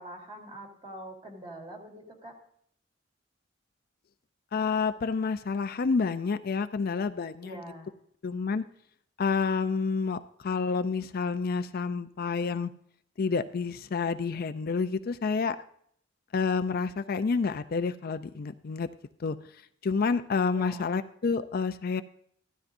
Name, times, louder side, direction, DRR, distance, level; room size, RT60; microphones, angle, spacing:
voice 1, 0.0-2.4 7.4-7.9 20.5-20.9, right 1 dB, 25° right, 0 dB, 3.2 m, -44 dB
voice 2, 4.5-7.5 8.2-8.6 9.2-12.7 13.2-15.6 16.3-18.9 19.2-19.4 19.8-22.0, left 5 dB, 50° left, 11 dB, 0.4 m, -29 dB
16.0 x 12.5 x 2.6 m, 0.65 s
head